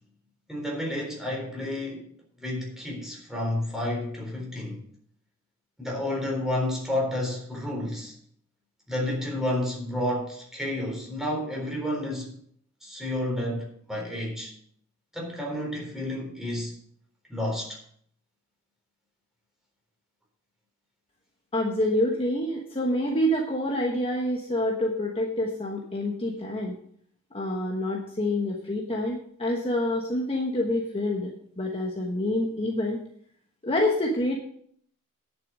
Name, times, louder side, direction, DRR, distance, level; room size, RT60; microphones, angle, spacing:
voice 1, 0.5-2.0 2.4-4.8 5.8-8.1 8.9-12.3 12.8-14.5 15.1-16.8 17.3-17.8, left 1 dB, ahead, 4.0 m, -30 dB
voice 2, 21.5-26.8 27.3-31.3 31.6-33.0 33.6-34.4, left 1 dB, 25° left, 1.3 m, -27 dB
10.5 x 6.9 x 6.3 m
head